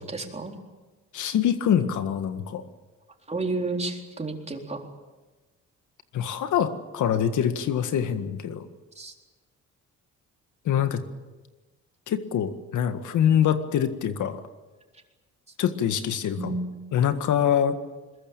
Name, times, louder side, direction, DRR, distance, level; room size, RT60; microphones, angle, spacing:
voice 1, 0.1-0.6 3.3-4.8 9.0-9.1 16.4-16.7, right 2 dB, 20° right, 2 dB, 4.1 m, -31 dB
voice 2, 1.1-2.6 6.1-8.7 10.7-11.0 12.1-14.4 15.6-16.6 16.9-17.8, left 9 dB, 75° left, 9 dB, 1.8 m, -24 dB
21.5 x 21.5 x 8.9 m, 1.2 s
cardioid pair, 90°, 30 cm